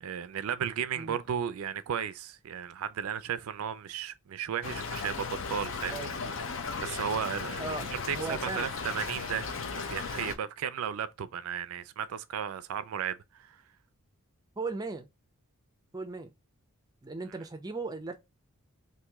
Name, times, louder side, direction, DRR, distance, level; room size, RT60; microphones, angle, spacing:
voice 1, 0.0-6.1 6.8-13.6, right 8 dB, 75° right, 0.4 m, -35 dB
Stream / Trickle dribble, 4.6-10.4, left 5 dB, 60° left, 0.6 m, -36 dB
voice 2, 8.1-8.7 14.6-15.1 15.9-16.3 17.0-18.2, right 3 dB, 15° right, 0.5 m, -37 dB
3.0 x 2.6 x 3.4 m
head